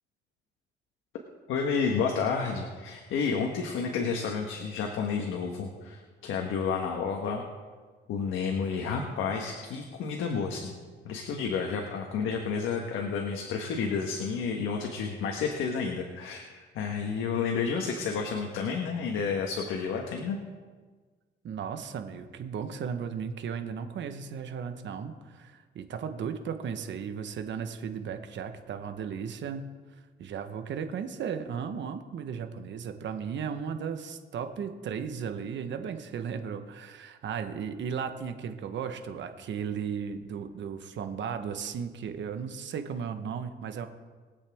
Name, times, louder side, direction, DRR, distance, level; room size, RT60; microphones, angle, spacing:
voice 1, 1.5-7.4 8.1-10.8 11.0-20.4, left 5 dB, 85° left, 1 dB, 1.4 m, -30 dB
voice 2, 21.4-29.7 30.2-43.9, right 7 dB, 65° right, 8 dB, 1.2 m, -35 dB
22.5 x 8.2 x 3.6 m, 1.4 s
cardioid pair, 90°, 20 cm